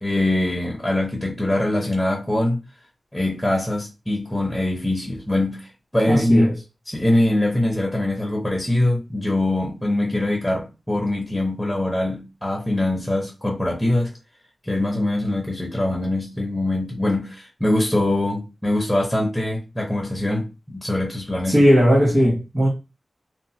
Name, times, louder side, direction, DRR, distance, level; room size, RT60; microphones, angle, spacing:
voice 1, 0.0-2.6 3.1-6.5 6.9-14.1 14.6-21.6, left 1 dB, 5° left, 0.7 m, -23 dB
voice 2, 6.1-6.5 21.5-22.7, equal, 25° right, 1.6 m, -17 dB
3.0 x 2.1 x 2.8 m
wide cardioid pair, 95°, 0 cm